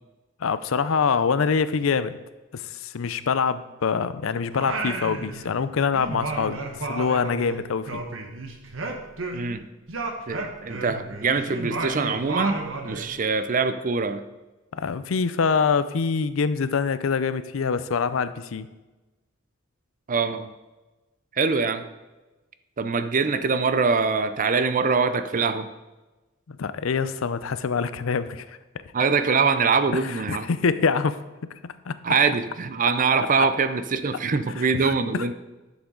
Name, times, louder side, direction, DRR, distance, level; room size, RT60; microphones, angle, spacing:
voice 1, 0.4-2.2 2.5-6.6 6.9-8.0 14.7-18.7 26.5-28.6 30.0-31.2 31.9-32.0 34.7-34.9, left 5 dB, 80° left, 13 dB, 0.5 m, -25 dB
Singing, 4.5-5.7 5.9-9.6 9.9-13.1, right 2 dB, 70° right, 1.1 m, -32 dB
voice 2, 9.3-9.6 10.3-14.2 20.1-20.5 21.3-21.8 22.8-25.7 28.9-30.5 32.0-35.3, right 5 dB, 40° right, 11 dB, 0.5 m, -23 dB
10.5 x 7.2 x 3.8 m, 1.1 s
head